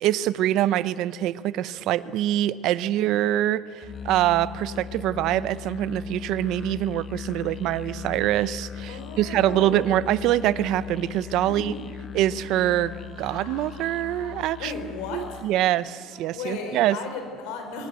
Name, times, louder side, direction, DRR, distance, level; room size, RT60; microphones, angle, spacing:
voice 1, 0.0-11.8 12.1-12.9 13.2-14.7 15.1-17.0, right 13 dB, 55° right, 16 dB, 0.7 m, -24 dB
Musical instrument, 3.8-15.6, left 8 dB, 25° left, 0.5 m, -38 dB
voice 2, 8.9-9.8 11.5-11.9 14.6-15.5 16.3-17.9, left 4 dB, 75° left, 5 dB, 4.8 m, -35 dB
sound 1, 10.5-16.2, left 3 dB, 60° left, 5.4 m, -51 dB
23.0 x 18.0 x 8.3 m, 2.1 s
cardioid pair, 175°, 0 cm